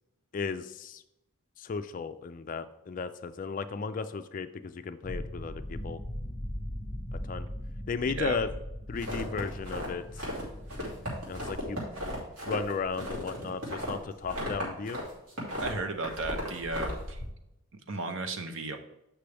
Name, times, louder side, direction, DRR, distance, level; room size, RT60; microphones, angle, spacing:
voice 1, 0.3-1.0 1.6-6.0 7.3-7.5 7.9-8.5 8.9-10.0 11.3-11.8 12.5-15.0, left 5 dB, 40° left, 10 dB, 0.3 m, -35 dB
sound 1, 5.0-11.9, equal, 20° left, 0.9 m, -40 dB
sound 2, 9.0-10.4 10.7-15.0 15.3-17.3, left 1 dB, 85° right, 2.8 m, -36 dB
voice 2, 15.6-17.2 17.9-18.8, right 3 dB, 60° right, 7 dB, 0.8 m, -34 dB
8.0 x 6.0 x 3.4 m, 0.87 s
head